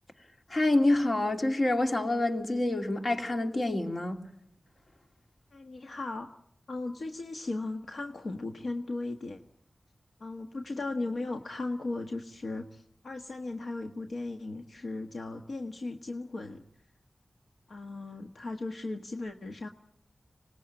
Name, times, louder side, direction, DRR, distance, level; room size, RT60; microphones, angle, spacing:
voice 1, 0.5-4.2, left 2 dB, 55° left, 2.7 m, -27 dB
voice 2, 5.5-6.3 6.7-9.4 10.2-16.6 17.7-19.7, left 2 dB, 80° left, 1.5 m, -37 dB
25.5 x 19.5 x 8.9 m
wide cardioid pair, 70°, 0 cm